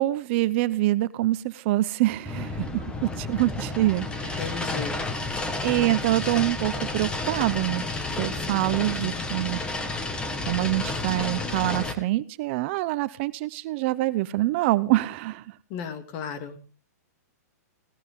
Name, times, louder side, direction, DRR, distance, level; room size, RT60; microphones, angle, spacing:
voice 1, 0.0-4.9 5.6-7.8 8.1-9.6 10.5-15.5, right 17 dB, 45° right, 16 dB, 0.8 m, -25 dB
sound 1, 2.3-11.9, left 2 dB, 10° left, 1.8 m, -31 dB
voice 2, 4.4-5.0 15.7-16.6, left 6 dB, 40° left, 9 dB, 2.3 m, -34 dB
17.5 x 14.5 x 3.7 m, 0.36 s
hypercardioid pair, 145°, 9 cm